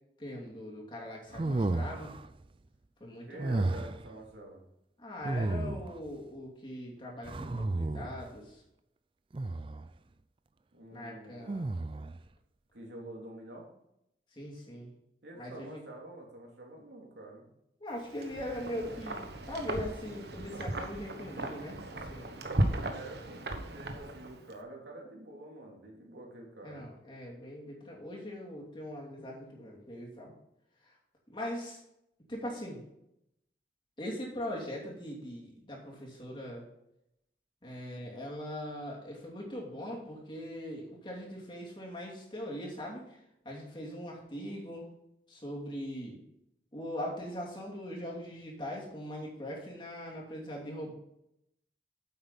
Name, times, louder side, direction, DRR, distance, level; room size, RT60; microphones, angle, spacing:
voice 1, 0.2-2.1 3.0-3.6 5.0-8.6 10.9-11.7 14.3-14.9 15.3-15.8 17.8-22.4 26.6-30.3 30.8-31.0 31.3-31.8 32.3-32.8 34.0-36.6 37.6-44.9 45.3-46.2 46.7-50.9, left 1 dB, 25° left, -3 dB, 2.9 m, -41 dB
sound 1, 1.3-2.3 3.4-4.1 5.2-6.1 7.2-8.3 9.3-9.9 11.5-12.2, right 2 dB, 30° right, 0.4 m, -33 dB
voice 2, 3.2-4.6 10.7-11.6 12.7-13.7 15.2-17.5 22.7-26.9, right 1 dB, 90° right, -1 dB, 3.1 m, -47 dB
Wind, 18.0-24.5, right 1 dB, 70° right, 1.3 m, -36 dB
9.7 x 7.9 x 4.1 m, 0.80 s
head